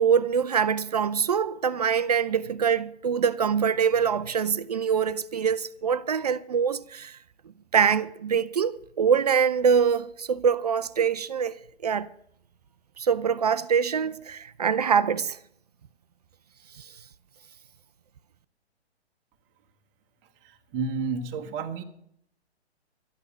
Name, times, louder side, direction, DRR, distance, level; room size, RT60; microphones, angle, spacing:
voice 1, 0.0-7.2 7.7-11.5 11.8-12.1 13.0-15.4 16.8-16.9, right 7 dB, 35° right, 0.5 m, -24 dB
voice 2, 20.4-21.8, right 4 dB, 20° right, 1.0 m, -31 dB
13.0 x 9.6 x 7.0 m
figure-of-eight pair, 125°, 34 cm